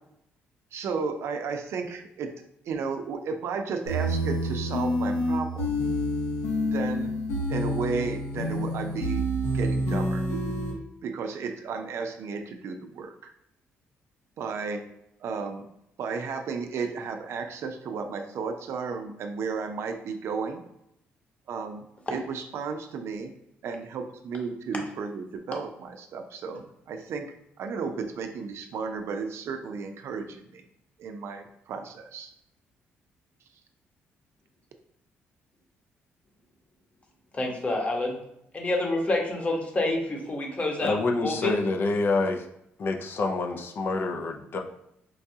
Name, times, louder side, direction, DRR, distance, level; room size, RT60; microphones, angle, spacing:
voice 1, 0.7-2.3 2.7-5.6 6.6-7.1 7.5-9.2 9.5-10.2 11.0-13.3 14.4-14.8 15.2-15.7 16.0-20.6 21.5-23.3 23.6-27.3 27.6-30.6 31.0-32.3, right 5 dB, 70° right, 6 dB, 0.4 m, -33 dB
sound 1, 3.9-10.7, equal, 85° left, 1.0 m, -28 dB
voice 2, 37.3-38.2 38.5-40.9 41.2-41.6, left 2 dB, 30° left, 1 dB, 1.0 m, -27 dB
voice 3, 40.8-42.4 42.8-44.6, left 3 dB, 50° left, 3 dB, 0.5 m, -27 dB
4.6 x 2.3 x 2.7 m, 0.79 s
cardioid pair, 90°, 5 cm